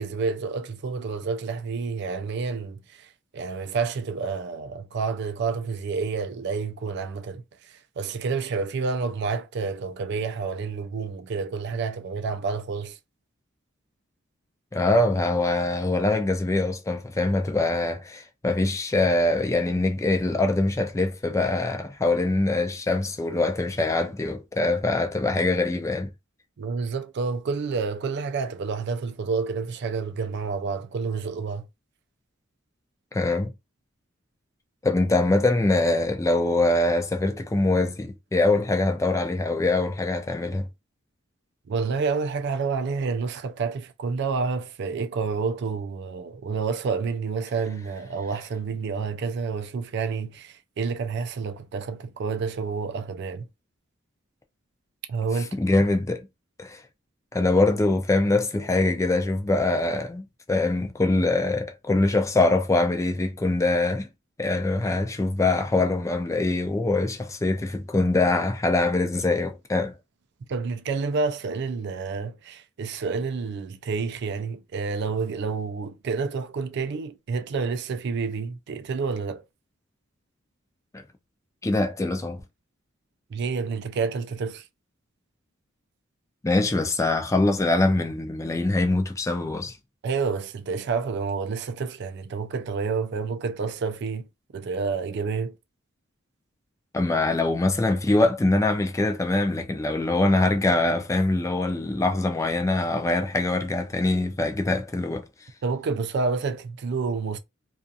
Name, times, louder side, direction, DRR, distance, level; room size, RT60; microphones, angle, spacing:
voice 1, 0.0-13.0 25.4-25.5 26.6-31.7 41.7-53.5 55.1-55.6 70.5-79.4 83.3-84.7 90.0-95.6 105.6-107.4, right 4 dB, 55° right, 0.4 m, -29 dB
voice 2, 14.7-26.1 33.1-33.5 34.8-40.7 55.6-56.3 56.6-56.8 57.3-64.1 64.4-70.0 80.9-81.0 81.6-82.4 86.4-89.8 96.9-105.2, left 2 dB, 15° left, 0.4 m, -23 dB
2.4 x 2.4 x 2.6 m
head